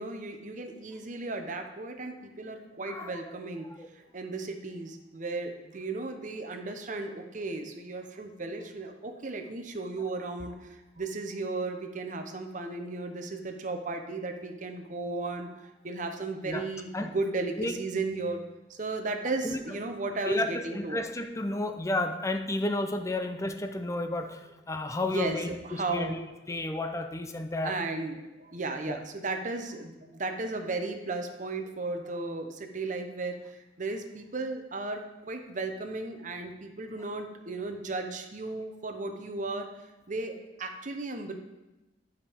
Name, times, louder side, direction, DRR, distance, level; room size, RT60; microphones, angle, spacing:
voice 1, 0.0-3.7 4.1-18.4 18.7-21.0 23.2-23.3 25.0-26.2 27.6-39.7 40.1-41.3, right 3 dB, 45° right, 5 dB, 0.8 m, -35 dB
voice 2, 2.9-3.2 3.8-3.9 16.4-16.6 16.9-17.1 17.6-17.7 19.4-19.6 20.3-27.8 28.8-29.0, left 2 dB, 15° left, 7 dB, 0.5 m, -32 dB
12.0 x 5.2 x 3.5 m, 1.0 s
head